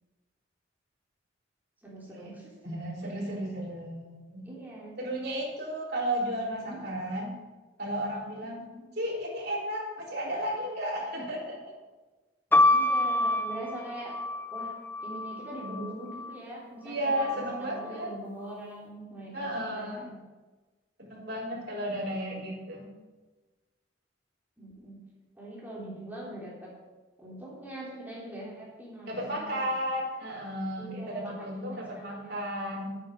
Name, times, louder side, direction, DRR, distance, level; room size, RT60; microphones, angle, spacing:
voice 1, 1.8-2.7 4.4-4.9 6.5-6.8 8.4-8.8 12.7-14.2 14.5-14.7 15.0-20.2 21.9-22.4 24.6-25.0 25.3-26.7 27.2-29.8 30.8-32.5, right 1 dB, 10° right, -6 dB, 3.3 m, -43 dB
voice 2, 2.6-4.4 5.0-7.3 7.8-8.6 9.0-11.8 15.6-15.8 16.8-18.1 19.3-20.0 21.0-22.9 29.1-33.0, equal, 55° right, -4 dB, 4.0 m, -33 dB
sound 1, 12.5-16.4 17.2-17.9, left 2 dB, 10° left, 0.4 m, -27 dB
11.5 x 9.0 x 5.2 m, 1.2 s
head